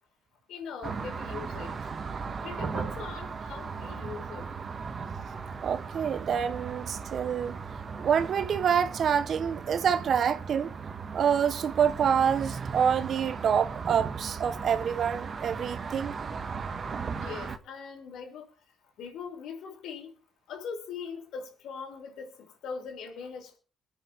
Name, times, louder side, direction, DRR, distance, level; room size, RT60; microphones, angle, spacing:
voice 1, 0.5-1.9 2.4-4.5 17.2-18.5 19.0-20.1 20.5-23.6, left 6 dB, 80° left, 5.5 m, -41 dB
sound 1, 0.8-17.6, right 5 dB, 45° right, 1.7 m, -37 dB
voice 2, 5.6-7.6 8.0-10.7 11.1-16.1, right 7 dB, 60° right, 0.9 m, -27 dB
23.5 x 8.9 x 3.5 m
cardioid pair, 90°, 0 cm